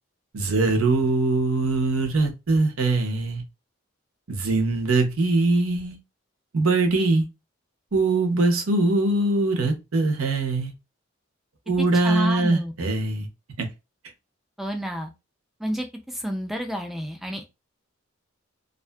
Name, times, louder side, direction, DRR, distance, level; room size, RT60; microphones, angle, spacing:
voice 1, 0.3-3.4 4.3-6.0 6.5-7.2 7.9-10.7 11.7-13.3 13.6-13.7, right 2 dB, 85° right, 5 dB, 0.7 m, -22 dB
voice 2, 11.8-12.7 14.6-15.1 15.6-17.5, equal, ahead, 4 dB, 0.3 m, -30 dB
2.5 x 2.4 x 2.2 m, 0.25 s
head